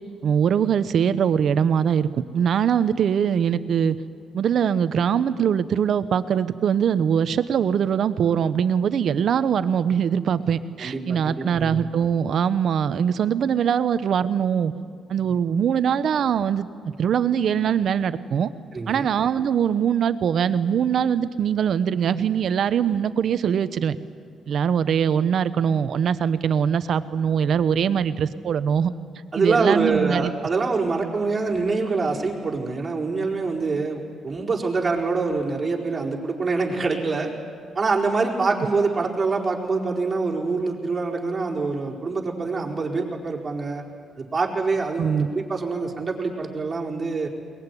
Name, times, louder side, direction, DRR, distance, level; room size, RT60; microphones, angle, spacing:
voice 1, 0.2-4.0 4.3-14.7 15.1-16.7 17.0-18.5 18.9-24.0 24.5-28.9 29.3-30.3 45.0-45.3, right 8 dB, 60° right, 13 dB, 1.0 m, -22 dB
voice 2, 10.8-11.8 18.7-19.1 29.3-37.3 37.7-43.8 44.2-47.3, right 4 dB, 30° right, -2 dB, 4.7 m, -25 dB
22.0 x 20.0 x 9.9 m, 2.1 s
cardioid pair, 90°, 0 cm